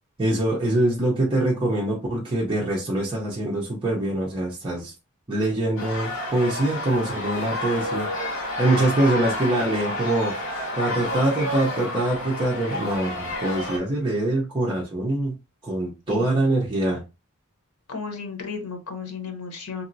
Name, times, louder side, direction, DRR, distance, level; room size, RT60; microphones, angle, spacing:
voice 1, 0.2-4.9 5.3-8.1 8.6-10.3 10.7-15.3 15.6-17.0, right 1 dB, 25° right, -4 dB, 0.7 m, -24 dB
sound 1, 5.8-13.8, left 1 dB, 65° left, 1.7 m, -30 dB
voice 2, 16.1-16.4 17.9-19.9, left 5 dB, 90° left, 5 dB, 0.8 m, -34 dB
2.9 x 2.7 x 2.6 m, 0.28 s
head